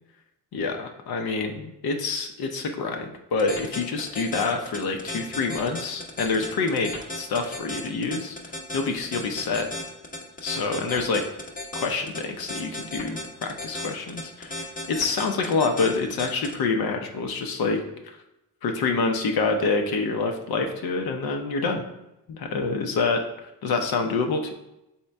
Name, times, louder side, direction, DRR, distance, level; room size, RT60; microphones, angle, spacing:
voice 1, 0.5-6.9 7.2-8.4 8.7-9.7 10.4-11.2 11.7-17.8 18.6-21.8 22.3-23.2 23.6-24.5, left 4 dB, 60° left, 4 dB, 0.7 m, -27 dB
sound 1, 3.4-16.5, left 1 dB, 20° left, 0.8 m, -34 dB
4.2 x 3.7 x 3.3 m, 0.91 s
cardioid pair, 95°, 42 cm